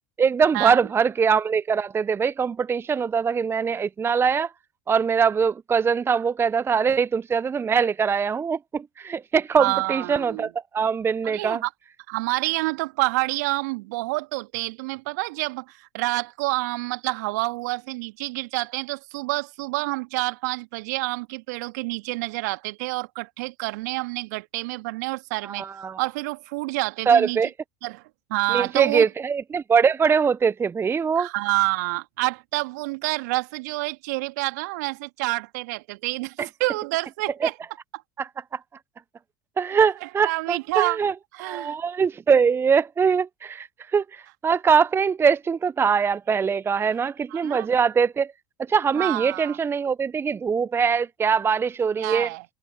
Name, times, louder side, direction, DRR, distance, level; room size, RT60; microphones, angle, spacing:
voice 1, 0.2-4.5 4.9-11.6 25.4-26.0 27.1-27.5 28.5-31.3 37.4-37.5 38.2-38.6 39.6-41.1 41.4-48.3 48.7-52.3, right 6 dB, 25° right, 0.6 m, -22 dB
voice 2, 9.6-10.5 11.2-11.7 12.1-25.7 26.0-27.4 27.8-28.0 28.3-29.1 31.2-37.5 40.0-41.0 41.3-41.8 47.3-47.7 48.9-49.6 52.0-52.5, right 23 dB, 70° right, 2.3 m, -28 dB
figure-of-eight pair, 65°, 10 cm